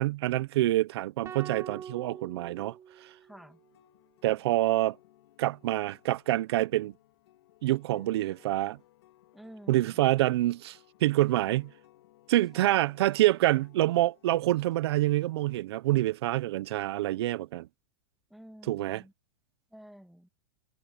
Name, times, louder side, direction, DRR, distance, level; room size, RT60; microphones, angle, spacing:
voice 1, 0.0-2.8 4.2-5.0 5.4-6.9 7.6-8.8 9.7-11.7 12.3-17.7 18.7-19.0, right 16 dB, 65° right, 0.8 m, -26 dB
sound 1, 1.2-3.6, right 8 dB, 20° right, 1.4 m, -44 dB
voice 2, 3.2-3.6 9.3-10.1 18.3-19.1 19.7-20.3, equal, ahead, 2.4 m, -50 dB
sound 2, 3.3-15.6, left 15 dB, 65° left, 3.6 m, -60 dB
supercardioid pair, 145°, 14 cm